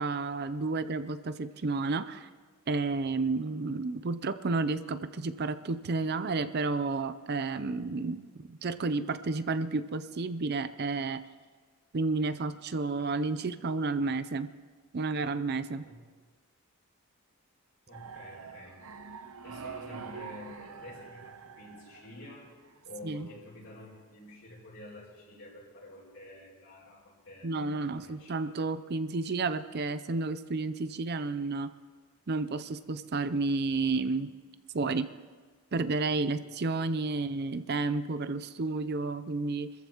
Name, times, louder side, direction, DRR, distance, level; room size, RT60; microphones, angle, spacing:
voice 1, 0.0-2.3 2.7-11.2 11.9-14.5 14.9-15.9 23.0-23.3 27.4-31.7 32.3-34.3 34.7-35.1 35.7-39.7, right 3 dB, 50° right, 13 dB, 0.5 m, -31 dB
voice 2, 17.9-18.8 19.4-22.5 22.8-28.4, left 1 dB, 60° left, -7 dB, 5.6 m, -49 dB
sound 1, 17.9-22.9, right 5 dB, 70° right, 0.8 m, -45 dB
27.0 x 14.5 x 3.0 m, 1.4 s
head